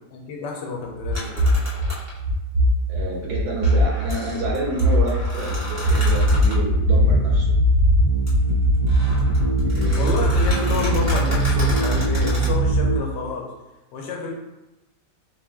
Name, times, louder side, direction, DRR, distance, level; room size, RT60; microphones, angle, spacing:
voice 1, 0.1-1.5 3.7-3.8 9.9-13.5 13.9-14.3, left 3 dB, 80° left, 0 dB, 1.3 m, -29 dB
sound 1, 1.0-13.0, equal, 80° right, 0.5 m, -20 dB
sound 2, 1.1-2.2 3.6-6.6 8.3-8.4 8.7-12.5, left 1 dB, 15° right, 0.6 m, -34 dB
voice 2, 2.9-7.6 9.7-10.3, right 2 dB, 65° right, -2 dB, 1.3 m, -29 dB
4.3 x 2.3 x 3.5 m, 1.0 s
omnidirectional pair, 1.9 m